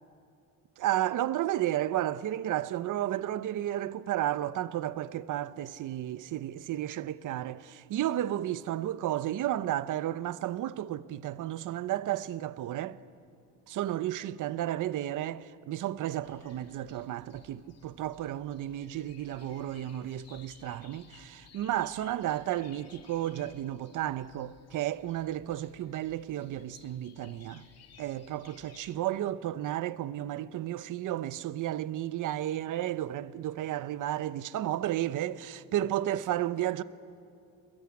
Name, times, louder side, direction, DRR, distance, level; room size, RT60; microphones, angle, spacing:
voice 1, 0.8-13.0 13.7-27.6 28.0-36.8, right 13 dB, 55° right, 0.8 m, -33 dB
sound 1, 16.2-29.0, left 7 dB, 40° left, 2.5 m, -58 dB
27.5 x 22.5 x 9.7 m
cardioid pair, 155°, 37 cm